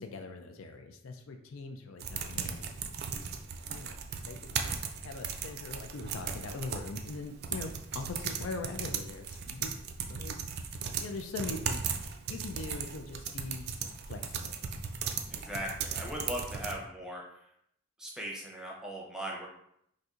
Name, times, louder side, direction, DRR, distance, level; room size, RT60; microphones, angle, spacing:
voice 1, 0.0-2.7 3.2-3.4 3.7-4.0 4.2-4.6 5.0-9.7 10.1-10.4 10.8-13.7 14.1-14.9, left 3 dB, 80° left, 5 dB, 0.4 m, -42 dB
sound 1, 2.0-16.8, right 6 dB, 50° right, 0.3 m, -37 dB
voice 2, 15.3-17.2 18.0-19.5, equal, 5° right, -2 dB, 0.6 m, -39 dB
4.1 x 2.6 x 2.4 m, 0.73 s
head